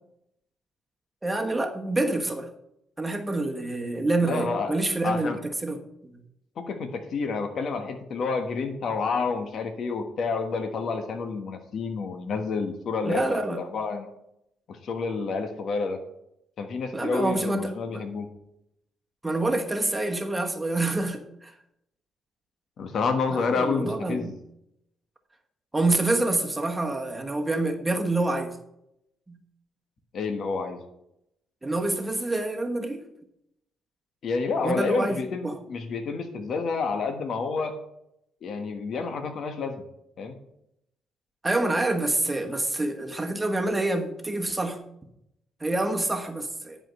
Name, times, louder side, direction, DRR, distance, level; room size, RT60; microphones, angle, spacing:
voice 1, 1.2-2.5 3.0-5.8 6.1-6.2 13.0-13.6 16.9-18.0 19.2-21.5 23.3-24.3 25.7-28.6 29.3-29.4 31.6-33.0 34.6-35.6 41.4-44.8 45.6-46.8, right 2 dB, 15° right, 3 dB, 1.2 m, -27 dB
voice 2, 4.2-4.7 5.0-5.4 6.6-14.1 14.7-16.0 16.6-18.3 22.8-24.4 30.1-30.8 34.2-37.7 38.4-39.8 40.2-40.3, left 4 dB, 60° left, 6 dB, 1.3 m, -29 dB
10.5 x 5.1 x 6.3 m, 0.80 s
cardioid pair, 90°, 0 cm